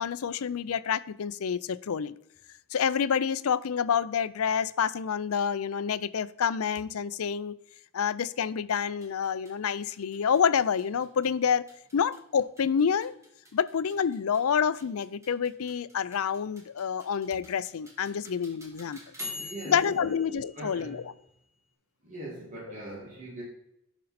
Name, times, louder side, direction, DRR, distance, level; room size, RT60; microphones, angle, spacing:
voice 1, 0.0-2.1 2.7-7.5 7.9-11.7 11.9-13.1 13.5-19.0 19.7-21.0, left 7 dB, 80° left, 0.4 m, -28 dB
sound 1, 9.0-21.6, left 2 dB, 15° right, 1.9 m, -47 dB
voice 2, 19.2-20.2 20.5-21.1 22.0-23.4, right 1 dB, 35° right, 2.1 m, -41 dB
11.5 x 5.4 x 4.2 m
head